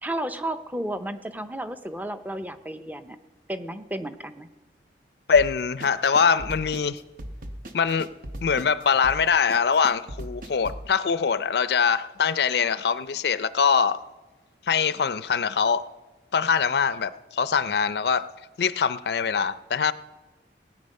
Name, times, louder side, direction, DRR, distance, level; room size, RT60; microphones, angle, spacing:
voice 1, 0.0-3.2 3.5-4.5, right 1 dB, 10° right, 10 dB, 0.5 m, -33 dB
voice 2, 5.3-7.0 7.7-8.1 8.4-14.0 14.7-15.9 16.3-18.3 18.6-19.9, left 6 dB, 65° left, 15 dB, 0.4 m, -23 dB
sound 1, 5.3-10.9, right 1 dB, 50° right, 0.9 m, -38 dB
18.5 x 8.9 x 5.4 m, 1.2 s
head